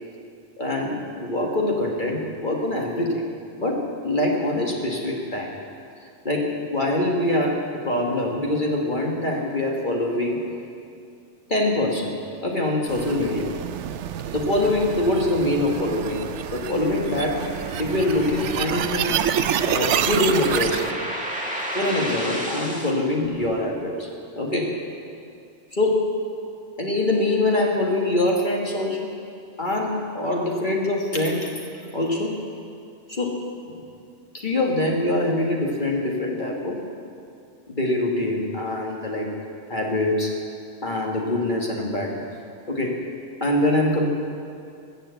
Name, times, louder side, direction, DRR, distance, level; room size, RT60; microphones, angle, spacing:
voice 1, 0.6-3.3 3.6-5.5 6.0-10.5 11.5-13.5 14.3-17.4 17.8-19.2 19.6-21.0 21.7-24.1 24.3-24.8 25.7-26.0 26.8-29.1 29.6-31.6 31.9-32.4 33.1-33.7 34.3-36.8 37.7-39.4 39.7-40.4 40.8-42.3 42.7-43.0 43.4-44.1, left 1 dB, 45° left, -1 dB, 1.7 m, -24 dB
sound 1, 12.9-20.9, right 9 dB, 80° right, 0.9 m, -28 dB
sound 2, 15.4-22.9, equal, 5° right, 1.9 m, -34 dB
20.5 x 6.9 x 7.9 m, 2.5 s
omnidirectional pair, 1.2 m